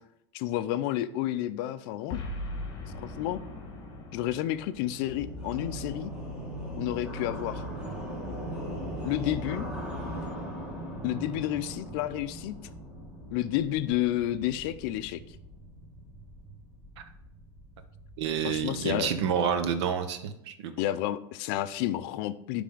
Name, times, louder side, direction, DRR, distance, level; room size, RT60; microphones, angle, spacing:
voice 1, 0.3-2.2 2.9-3.4 4.1-6.1 6.8-7.6 9.0-9.7 11.0-12.6 13.3-15.2 18.4-19.1 20.8-22.6, left 13 dB, 60° left, 13 dB, 0.5 m, -30 dB
Boom, 2.1-6.5, left 1 dB, 30° left, 1.4 m, -41 dB
sound 1, 5.0-19.9, equal, 5° right, 1.5 m, -40 dB
voice 2, 18.2-20.7, right 7 dB, 90° right, 9 dB, 0.8 m, -29 dB
9.6 x 3.4 x 3.8 m, 0.78 s
supercardioid pair, 160°, 14 cm